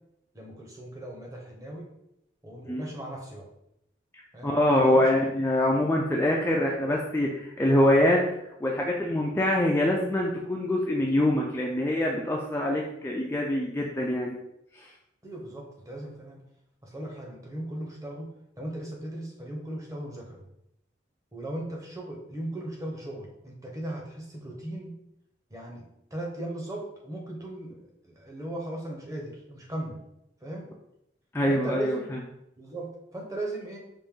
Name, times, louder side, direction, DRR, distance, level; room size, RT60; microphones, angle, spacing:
voice 1, 0.3-1.9 2.4-3.4 4.3-4.5 4.8-5.2 15.2-16.4 16.8-18.3 18.6-20.4 21.3-24.9 25.5-25.8 26.1-30.0 30.4-30.7 31.4-32.1 32.6-33.8, right 1 dB, 15° right, -1 dB, 0.8 m, -37 dB
voice 2, 4.4-8.2 8.6-14.3 14.7-14.9 31.3-32.2, left 1 dB, 10° left, -2 dB, 0.4 m, -24 dB
5.2 x 2.6 x 3.7 m, 0.81 s
head